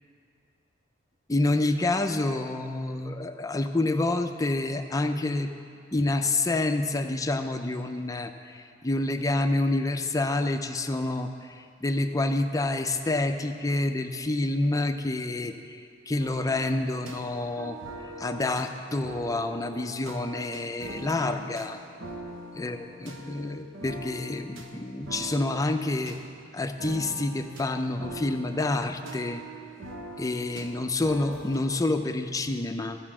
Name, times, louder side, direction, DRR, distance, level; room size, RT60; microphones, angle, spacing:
voice 1, 1.3-5.5 5.9-15.8 16.1-17.8 18.2-21.8 22.6-26.2 26.5-29.4 30.2-33.0, left 2 dB, 20° left, 7 dB, 0.5 m, -28 dB
sound 1, 16.2-31.8, right 2 dB, 85° right, 1.1 m, -43 dB
14.0 x 5.0 x 7.3 m, 2.3 s
head